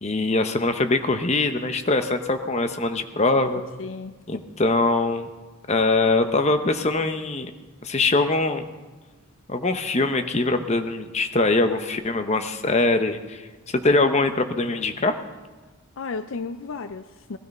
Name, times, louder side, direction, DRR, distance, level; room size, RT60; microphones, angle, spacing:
voice 1, 0.0-3.6 4.3-5.3 5.7-7.5 7.8-8.6 9.5-13.4 13.7-15.2, left 2 dB, 30° left, 8 dB, 0.8 m, -22 dB
voice 2, 3.8-4.4 16.0-17.4, left 4 dB, 60° left, 11 dB, 0.5 m, -34 dB
18.5 x 12.5 x 5.4 m, 1.3 s
head